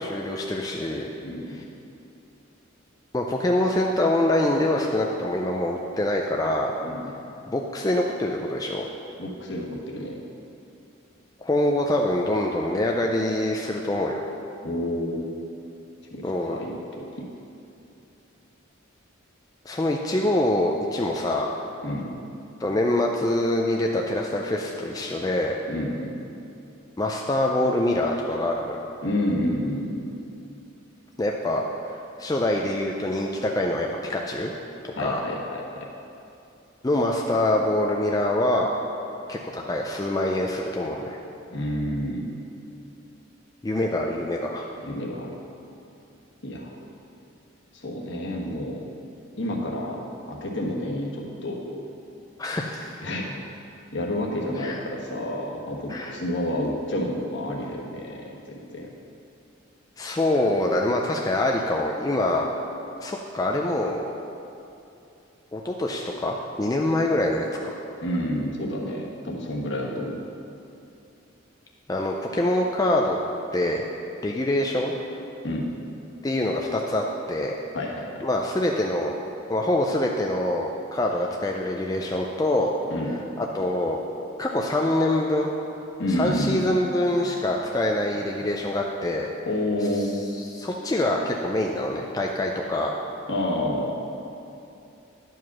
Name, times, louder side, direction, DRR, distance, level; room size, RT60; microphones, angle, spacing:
voice 1, 0.0-1.1 1.5-1.6 3.1-6.7 7.5-8.8 11.4-14.2 16.2-16.6 19.7-21.5 22.6-25.6 27.0-28.8 31.2-34.5 34.8-35.2 36.8-38.7 39.3-41.2 43.6-44.7 52.4-53.0 54.6-54.8 55.9-56.1 60.0-62.4 63.0-64.0 65.5-67.8 71.9-73.2 73.5-73.9 74.2-74.9 76.2-77.6 78.2-79.1 79.5-82.7 83.4-84.0 84.4-85.5 86.1-89.3 89.9-90.1 90.5-92.9, left 1 dB, 20° left, 0 dB, 0.4 m, -25 dB
voice 2, 1.2-1.6 6.8-7.1 9.2-10.2 14.6-15.2 16.1-17.1 21.8-22.2 25.7-26.2 29.0-30.1 34.9-35.6 41.5-42.4 44.8-45.3 46.4-46.8 47.7-48.8 49.4-50.0 50.3-51.6 53.0-53.4 53.9-58.9 68.0-70.2 75.4-75.7 77.7-78.2 82.9-83.2 86.0-86.6 89.5-90.1 93.3-94.0, left 1 dB, 60° left, -2 dB, 1.3 m, -29 dB
10.5 x 4.8 x 6.1 m, 2.7 s
head